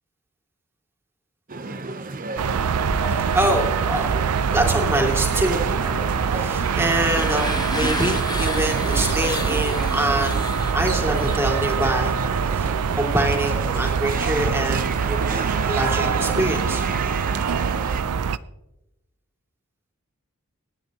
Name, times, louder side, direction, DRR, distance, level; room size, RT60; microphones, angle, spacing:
sound 1, 1.5-18.0, right 4 dB, 40° right, 0.8 m, -32 dB
sound 2, 2.4-18.4, right 6 dB, 85° right, 0.5 m, -24 dB
voice 1, 2.9-12.1 12.4-16.8, right 1 dB, 10° right, 0 dB, 2.5 m, -25 dB
sound 3, 6.2-12.1, left 3 dB, 20° left, 0.6 m, -33 dB
26.5 x 9.8 x 3.0 m, 0.92 s
head